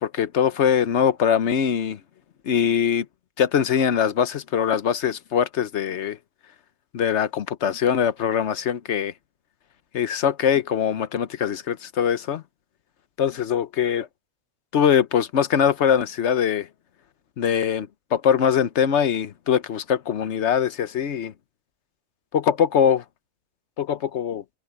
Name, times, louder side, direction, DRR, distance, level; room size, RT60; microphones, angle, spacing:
voice 1, 0.0-2.0 2.5-3.0 3.4-6.2 6.9-9.1 9.9-12.4 13.2-14.1 14.7-16.7 17.4-21.3 22.3-23.0 23.8-24.4, left 8 dB, 80° left, 1.2 m, -22 dB
omnidirectional pair, 1.2 m